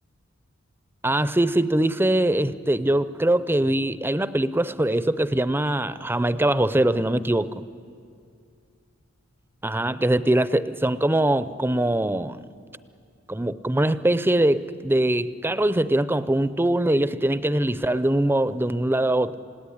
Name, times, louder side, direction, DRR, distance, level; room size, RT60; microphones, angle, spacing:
voice 1, 1.0-7.6 9.6-12.4 13.3-19.3, right 1 dB, 10° right, 15 dB, 0.6 m, -22 dB
27.5 x 17.5 x 9.9 m, 2.4 s
head